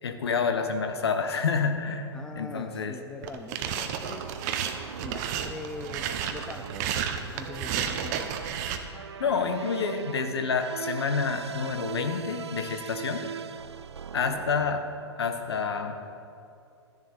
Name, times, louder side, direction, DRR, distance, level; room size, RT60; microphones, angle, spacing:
voice 1, 0.0-2.1 2.3-3.0 9.2-13.3 14.1-14.8 15.2-16.0, left 5 dB, 65° left, 7 dB, 1.1 m, -28 dB
voice 2, 2.1-4.3 5.0-8.4 14.2-14.4, left 3 dB, 5° left, 7 dB, 0.4 m, -42 dB
sound 1, 3.2-8.8, right 8 dB, 40° right, 0.8 m, -32 dB
sound 2, 4.1-14.8, right 7 dB, 70° right, 0.4 m, -40 dB
13.0 x 10.0 x 4.3 m, 2.6 s
figure-of-eight pair, 105°, 15 cm